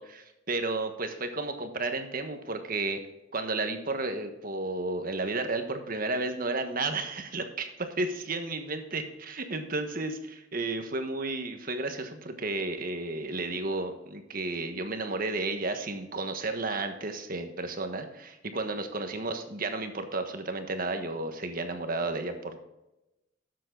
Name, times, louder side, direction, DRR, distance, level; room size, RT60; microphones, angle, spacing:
voice 1, 0.0-3.0 3.3-22.6, right 2 dB, 50° right, 7 dB, 1.4 m, -32 dB
12.5 x 7.5 x 3.9 m, 0.95 s
head